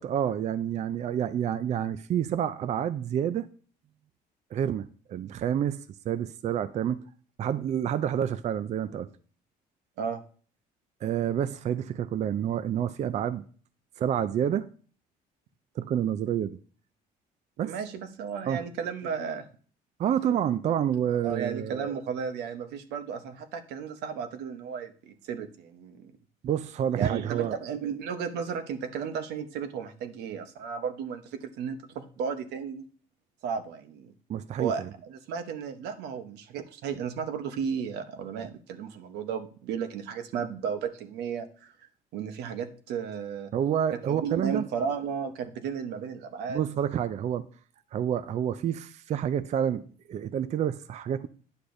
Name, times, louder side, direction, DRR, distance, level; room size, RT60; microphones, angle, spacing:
voice 1, 0.0-3.5 4.5-5.8 6.1-7.0 7.4-9.1 11.0-13.4 14.0-14.7 15.8-16.6 17.6-17.7 18.5-18.6 20.0-22.0 26.4-27.6 34.3-34.9 43.5-44.6 46.5-47.5 47.9-51.3, right 9 dB, 45° right, 0.4 m, -28 dB
voice 2, 17.6-19.5 21.2-26.1 27.0-32.8 33.4-34.1 34.6-41.7 42.1-43.5 43.9-46.6, right 6 dB, 85° right, 0.8 m, -34 dB
9.7 x 6.7 x 2.6 m
cardioid pair, 110°, 17 cm